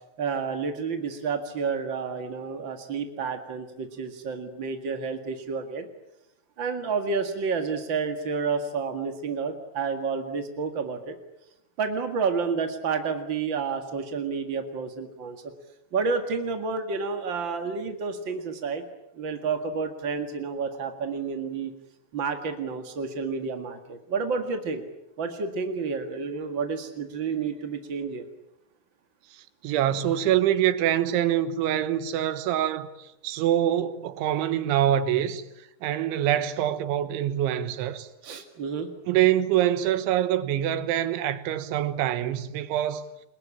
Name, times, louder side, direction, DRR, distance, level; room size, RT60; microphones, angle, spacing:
voice 1, 0.2-5.9 6.6-11.2 11.8-15.4 15.9-18.8 19.1-21.7 22.1-24.8 25.2-28.3 38.2-38.9, right 5 dB, 55° right, 1.3 m, -30 dB
voice 2, 29.3-35.4 35.8-38.1 39.1-43.0, right 11 dB, 80° right, 3.7 m, -25 dB
29.5 x 21.5 x 8.7 m
omnidirectional pair, 5.4 m